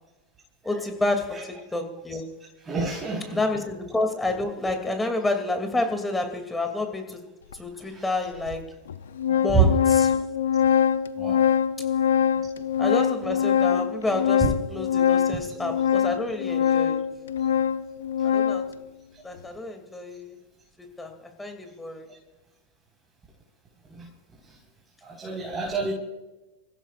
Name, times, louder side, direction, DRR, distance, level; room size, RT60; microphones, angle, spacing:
voice 1, 0.6-2.3 3.3-7.2 7.5-8.7 9.3-10.2 12.8-17.1 18.2-18.7 19.2-20.4 20.8-21.1 21.4-22.1, left 2 dB, 10° left, 5 dB, 2.7 m, -29 dB
voice 2, 2.7-3.4 7.9-8.0 9.5-9.7 11.2-11.4 14.4-14.5 25.0-25.9, right 6 dB, 20° right, -3 dB, 4.7 m, -26 dB
Organ, 7.5-7.6 8.5-8.6 8.9-18.8, left 8 dB, 80° left, 0.6 m, -23 dB
29.5 x 16.0 x 2.5 m, 1.0 s
hypercardioid pair, 95°, 0 cm